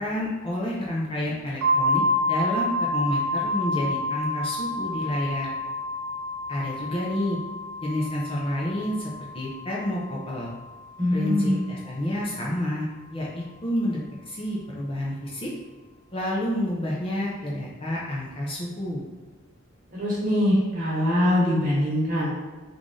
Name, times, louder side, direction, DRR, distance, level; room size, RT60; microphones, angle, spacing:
voice 1, 0.0-5.5 6.5-7.4 7.8-10.5 11.1-14.0 14.3-15.5 16.1-19.1, left 1 dB, 25° left, -5 dB, 0.5 m, -29 dB
sound 1, 1.6-11.2, left 1 dB, 65° right, 0.3 m, -29 dB
voice 2, 11.0-11.6 19.9-22.3, left 1 dB, 40° right, -6 dB, 1.1 m, -23 dB
3.1 x 2.5 x 3.8 m, 1.3 s
head